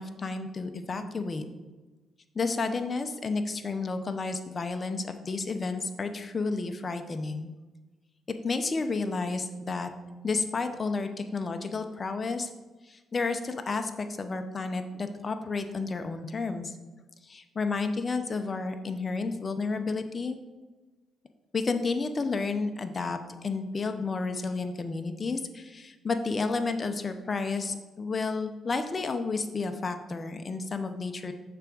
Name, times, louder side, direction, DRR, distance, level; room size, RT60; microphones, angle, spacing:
voice 1, 0.0-1.4 2.3-7.5 8.4-9.9 10.2-12.5 12.9-16.8 17.2-20.4 21.5-31.3, left 4 dB, 35° left, 7 dB, 0.6 m, -31 dB
6.7 x 3.5 x 6.1 m, 1.2 s
cardioid pair, 90°, 0 cm